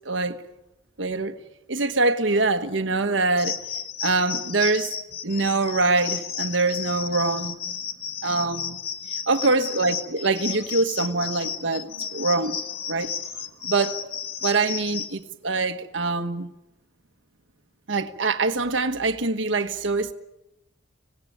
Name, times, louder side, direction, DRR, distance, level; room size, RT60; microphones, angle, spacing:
voice 1, 0.0-0.4 1.0-1.3 1.7-3.6 4.0-4.9 5.2-7.8 8.2-8.8 9.1-12.6 12.9-13.1 13.6-14.0 14.4-16.5 17.9-20.1, right 3 dB, 80° right, 1.3 m, -24 dB
sound 1, 3.4-15.1, left 7 dB, 50° left, 1.8 m, -33 dB
25.5 x 18.5 x 9.4 m
head